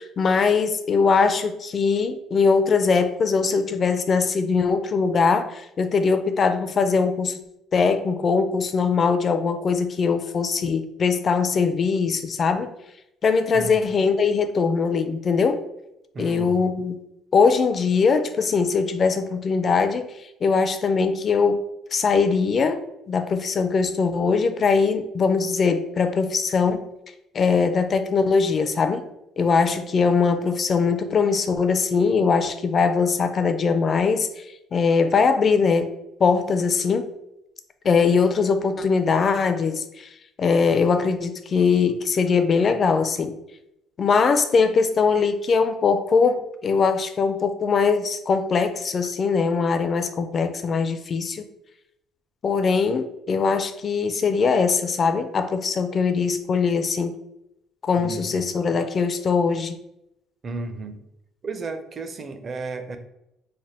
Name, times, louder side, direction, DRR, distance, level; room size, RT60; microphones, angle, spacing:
voice 1, 0.0-7.4 7.7-12.7 13.2-15.6 16.2-17.0 17.3-20.1 20.4-21.6 21.9-26.9 27.3-29.1 29.4-35.9 36.2-37.1 37.8-40.1 40.4-43.4 44.0-51.5 52.4-57.1 57.8-59.8, left 5 dB, 40° left, 8 dB, 0.4 m, -21 dB
voice 2, 16.1-16.7 58.0-58.5 60.4-61.0 61.4-63.0, right 3 dB, 35° right, 8 dB, 0.5 m, -33 dB
3.3 x 2.1 x 4.1 m, 0.85 s
cardioid pair, 110°, 0 cm